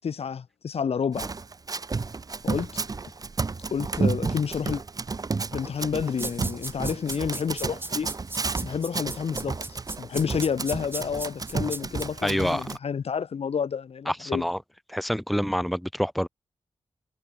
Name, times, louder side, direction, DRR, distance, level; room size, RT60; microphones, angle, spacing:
voice 1, 0.0-1.3 2.4-2.7 3.7-4.8 5.5-8.1 8.6-14.4, left 6 dB, 90° left, 7.5 m, -29 dB
Run, 1.1-12.8, right 4 dB, 40° right, 4.7 m, -32 dB
sound 1, 6.2-12.1, right 2 dB, 20° right, 4.1 m, -36 dB
voice 2, 12.2-12.6 14.0-14.6 14.9-16.3, equal, ahead, 1.4 m, -27 dB
wide cardioid pair, 160°, 10 cm